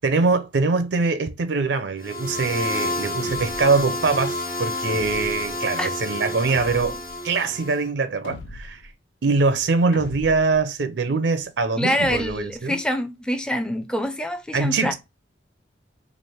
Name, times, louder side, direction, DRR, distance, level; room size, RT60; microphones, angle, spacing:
voice 1, 0.0-8.9 9.2-12.8 14.5-14.9, right 4 dB, 75° right, 0.5 m, -23 dB
sound 1, 2.0-7.8, left 2 dB, 50° left, 1.3 m, -29 dB
sound 2, 3.2-3.9 4.9-5.5 6.5-7.2 8.2-8.9 9.9-10.6 11.9-12.6, left 3 dB, 75° left, 0.5 m, -39 dB
voice 2, 11.8-14.9, equal, 5° left, 0.5 m, -25 dB
3.2 x 2.5 x 4.1 m
head